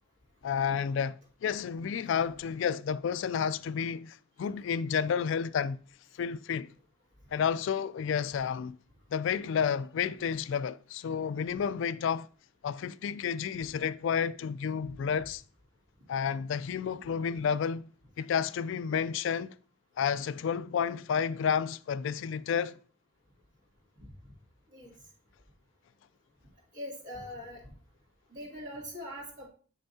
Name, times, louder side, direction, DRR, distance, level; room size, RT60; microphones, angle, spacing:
voice 1, 0.4-5.8 6.1-6.7 7.3-8.8 9.1-12.3 12.6-15.4 16.1-17.9 18.2-19.6 20.0-22.8, left 7 dB, 65° left, 0.3 m, -31 dB
voice 2, 26.7-27.7 28.3-29.5, equal, 60° right, 3.0 m, -42 dB
8.5 x 6.9 x 2.7 m
head